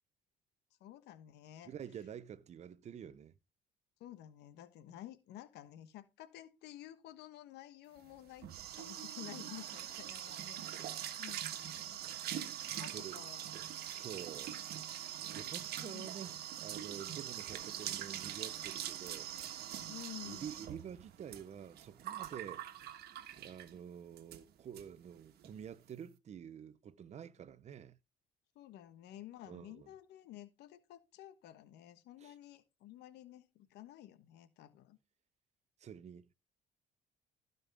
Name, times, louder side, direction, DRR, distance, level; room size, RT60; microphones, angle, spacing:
voice 1, 0.8-1.7 4.0-8.5 8.8-12.0 12.6-13.5 13.9-14.1 15.7-16.1 19.9-20.7 28.5-35.0, left 13 dB, 80° left, 1.2 m, -52 dB
voice 2, 1.6-3.3 10.6-10.7 12.7-13.2 14.0-14.6 15.3-19.3 20.2-22.9 23.3-28.0 29.5-29.9 32.2-32.3 35.8-36.3, right 8 dB, 40° right, 0.7 m, -48 dB
sound 1, 8.0-23.8 24.2-24.4 24.7-24.8 25.1-25.5, right 11 dB, 70° right, 1.4 m, -43 dB
16.0 x 5.4 x 3.4 m
cardioid pair, 110°, 17 cm